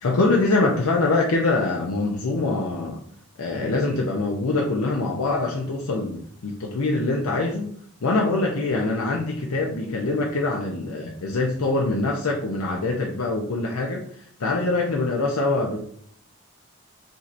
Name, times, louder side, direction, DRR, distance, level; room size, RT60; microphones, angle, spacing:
voice 1, 0.0-3.0 3.4-7.7 8.0-14.0 14.4-15.8, left 2 dB, 80° left, 0 dB, 0.6 m, -24 dB
7.1 x 2.8 x 2.5 m, 0.63 s
head